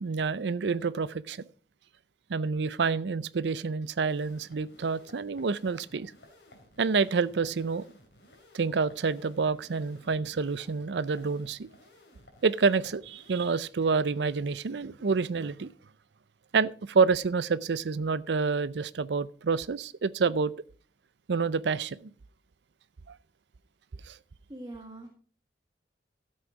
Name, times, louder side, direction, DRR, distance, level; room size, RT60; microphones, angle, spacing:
voice 1, 0.0-1.4 2.3-6.1 6.8-7.8 8.5-11.7 12.4-15.7 16.5-20.5 21.3-22.1 23.1-23.2 24.0-24.2, right 5 dB, 75° right, 0.5 m, -28 dB
sound 1, 4.1-13.6, left 1 dB, 85° left, 3.5 m, -57 dB
voice 2, 24.5-25.1, right 1 dB, 25° right, 1.5 m, -42 dB
12.5 x 7.9 x 4.9 m
head